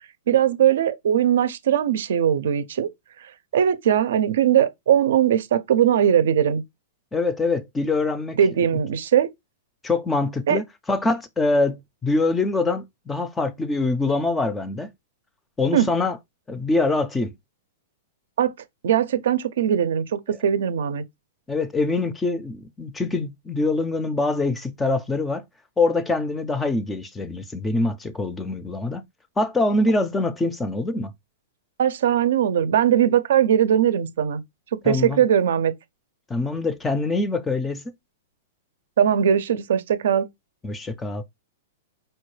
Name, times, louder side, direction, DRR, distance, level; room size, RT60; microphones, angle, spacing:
voice 1, 0.3-2.9 3.2-6.6 8.4-9.3 10.5-10.6 15.7-15.9 18.4-18.5 18.8-21.0 31.8-34.4 34.8-35.7 39.0-40.3, right 9 dB, 75° right, 0.5 m, -20 dB
voice 2, 7.1-8.4 9.8-14.9 15.6-16.2 16.5-17.3 21.5-25.4 25.8-29.0 29.4-31.1 34.9-35.2 36.3-37.8 40.6-41.2, left 3 dB, 10° left, 0.4 m, -24 dB
4.3 x 2.3 x 3.1 m
hypercardioid pair, 140°, 0 cm